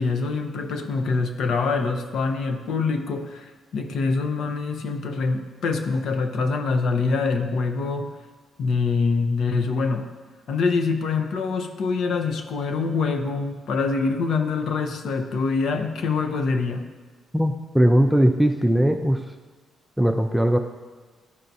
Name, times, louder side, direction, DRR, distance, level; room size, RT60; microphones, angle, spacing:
voice 1, 0.0-8.1 8.6-10.1 10.5-16.9, left 4 dB, 70° left, 6 dB, 0.7 m, -25 dB
voice 2, 17.3-19.2 20.0-20.6, equal, 5° right, 4 dB, 0.4 m, -19 dB
11.0 x 4.5 x 2.7 m, 1.4 s
cardioid pair, 90°, 0 cm